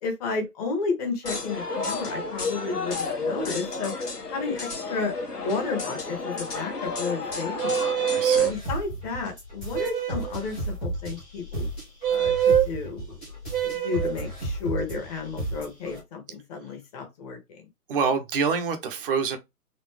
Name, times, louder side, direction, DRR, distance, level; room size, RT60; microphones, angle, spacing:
voice 1, 0.0-3.9 4.3-7.9 8.4-11.7 12.1-13.1 13.6-17.6, left 4 dB, 25° left, 1.3 m, -32 dB
sound 1, 1.2-8.5, left 3 dB, 90° left, 1.4 m, -32 dB
sound 2, 7.6-8.5 9.7-10.3 12.0-12.7 13.5-14.2, right 9 dB, 65° right, 1.2 m, -24 dB
voice 2, 8.1-8.5 17.9-19.4, right 5 dB, 35° right, 0.8 m, -26 dB
sound 3, 8.4-16.0, right 1 dB, 5° left, 0.5 m, -34 dB
4.1 x 2.6 x 3.2 m
figure-of-eight pair, 135°, 46 cm